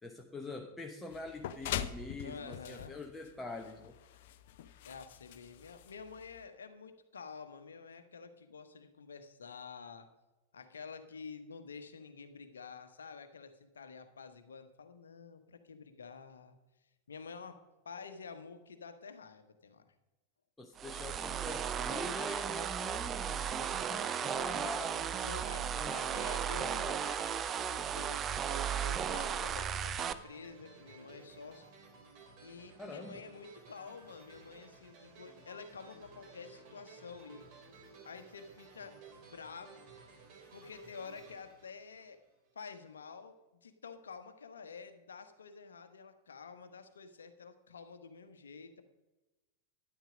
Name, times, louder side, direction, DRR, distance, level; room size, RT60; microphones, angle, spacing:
voice 1, 0.0-4.0 20.6-25.1 25.8-27.6 32.8-33.2, left 2 dB, 10° left, 1 dB, 1.0 m, -45 dB
sound 1, 1.1-6.4, left 10 dB, 55° left, 0.7 m, -43 dB
voice 2, 2.2-2.9 4.8-10.1 10.5-16.6 17.1-19.8 25.2-26.9 27.9-31.6 32.4-37.5 38.0-39.8 40.5-42.2 42.5-48.8, left 5 dB, 70° left, 8 dB, 1.1 m, -49 dB
sound 2, 20.8-30.1, right 8 dB, 25° right, 0.6 m, -35 dB
sound 3, 27.7-42.5, right 4 dB, 45° right, 2.7 m, -56 dB
12.0 x 10.0 x 5.1 m, 1.1 s
figure-of-eight pair, 90°, 0 cm